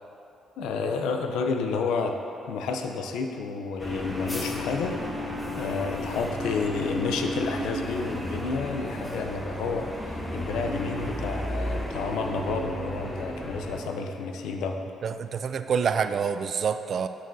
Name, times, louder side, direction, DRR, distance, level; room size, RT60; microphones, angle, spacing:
voice 1, 0.6-5.0 5.5-14.8, left 4 dB, 90° left, 4 dB, 0.5 m, -30 dB
sound 1, 3.8-13.8, left 1 dB, 10° left, 0.9 m, -33 dB
voice 2, 15.0-17.1, right 6 dB, 55° right, 10 dB, 0.3 m, -27 dB
9.1 x 6.4 x 2.7 m, 2.7 s
cardioid pair, 90°, 0 cm